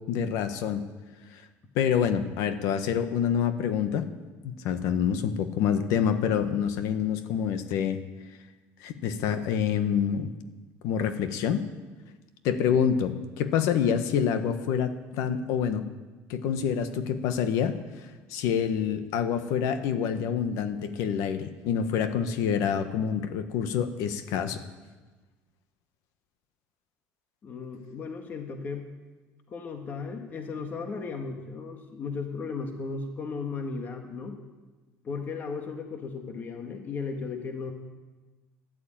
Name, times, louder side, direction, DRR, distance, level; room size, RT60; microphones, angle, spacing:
voice 1, 0.1-0.8 1.3-1.4 1.7-4.0 4.4-8.0 8.8-10.3 10.8-11.6 12.4-15.9 16.3-17.8 18.3-24.6, left 8 dB, 75° left, 9 dB, 1.4 m, -27 dB
voice 2, 27.4-28.8 29.5-34.4 35.0-37.7, left 4 dB, 30° left, 4 dB, 1.7 m, -35 dB
13.0 x 11.5 x 8.9 m, 1.2 s
cardioid pair, 145°, 6 cm